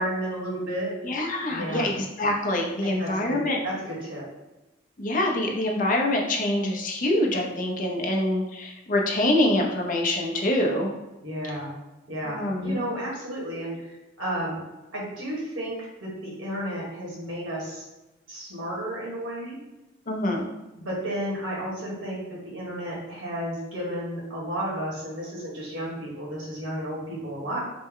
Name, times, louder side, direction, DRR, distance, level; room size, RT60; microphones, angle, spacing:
voice 1, 0.0-0.9 1.5-1.9 2.8-4.2 11.2-11.7 12.1-13.9 14.2-14.6 14.9-17.8 18.3-19.6 20.8-27.6, right 1 dB, 70° right, -4 dB, 1.4 m, -32 dB
voice 2, 1.0-3.6 5.0-10.9 12.3-12.8 20.1-20.5, left 1 dB, 40° left, 1 dB, 0.6 m, -25 dB
4.2 x 2.1 x 3.7 m, 1.0 s
head